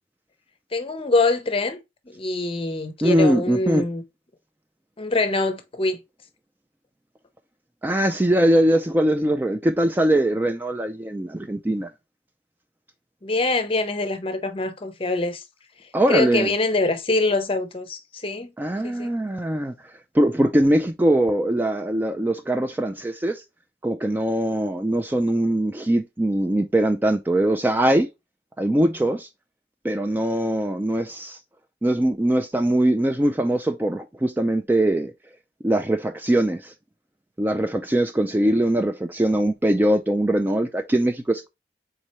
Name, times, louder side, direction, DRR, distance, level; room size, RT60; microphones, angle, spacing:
voice 1, 0.7-1.8 2.1-4.0 5.0-6.0 13.2-15.4 16.1-18.5 18.8-19.1, left 2 dB, 30° left, 0.7 m, -24 dB
voice 2, 3.0-3.8 7.8-11.9 15.9-16.5 18.6-19.7 20.1-23.4 23.8-28.1 28.6-29.3 29.8-31.4 31.8-35.1 35.6-36.7 37.4-41.5, right 1 dB, 10° right, 0.3 m, -21 dB
4.3 x 3.7 x 3.0 m
head